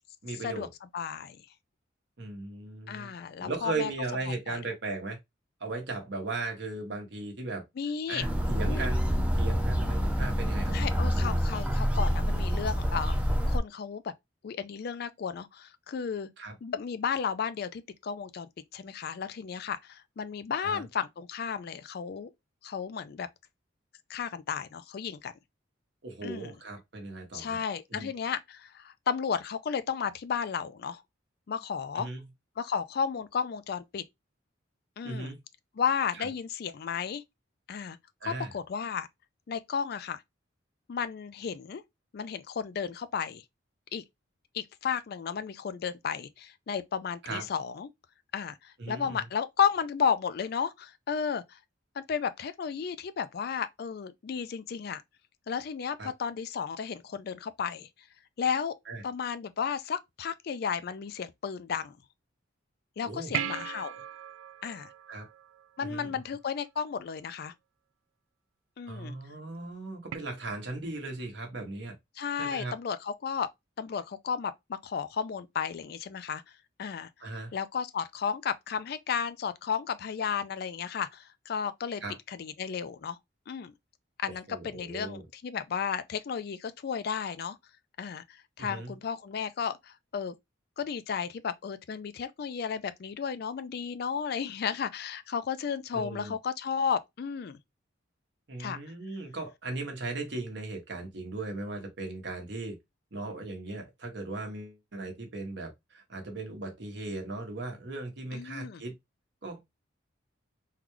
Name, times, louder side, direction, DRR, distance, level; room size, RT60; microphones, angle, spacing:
voice 1, 0.2-0.7 2.2-3.1 3.4-5.2 5.6-7.6 8.1-9.0 9.3-10.7 16.4-16.5 20.6-20.9 26.0-27.6 27.9-28.1 31.9-32.2 35.0-35.4 36.1-36.3 38.2-38.5 47.2-47.4 48.8-49.2 56.0-56.1 58.9-59.0 63.0-63.3 65.1-65.3 65.8-66.2 68.9-71.9 72.3-72.7 77.2-77.5 82.0-82.2 84.5-85.2 88.6-88.9 95.9-96.3 98.5-102.8 103.1-108.9 109.4-109.6, right 3 dB, 60° right, 1.0 m, -37 dB
voice 2, 0.9-1.4 2.9-3.9 4.3-4.6 7.8-8.3 8.7-8.9 10.7-13.2 13.5-14.1 14.4-16.3 16.6-22.3 22.6-23.3 24.1-25.3 26.2-26.5 27.3-31.0 31.5-32.1 32.6-34.0 35.0-35.3 35.8-37.2 37.7-38.0 38.2-39.1 39.5-40.2 40.9-41.8 42.1-43.4 43.9-44.0 44.5-47.9 48.3-51.6 52.0-55.0 55.5-57.9 58.4-58.7 59.0-62.0 63.0-64.0 64.6-64.9 65.8-67.5 68.8-69.1 72.2-73.5 73.8-76.4 76.8-77.1 77.5-82.0 82.3-83.2 83.5-83.7 84.2-87.6 88.0-90.4 90.8-97.6 98.6-98.8 108.3-108.8, left 7 dB, 50° left, 0.3 m, -33 dB
sound 1, 8.2-13.6, equal, 5° right, 0.5 m, -27 dB
sound 2, 63.3-66.0 70.1-70.2, right 9 dB, 85° right, 0.4 m, -37 dB
3.8 x 2.3 x 3.0 m
head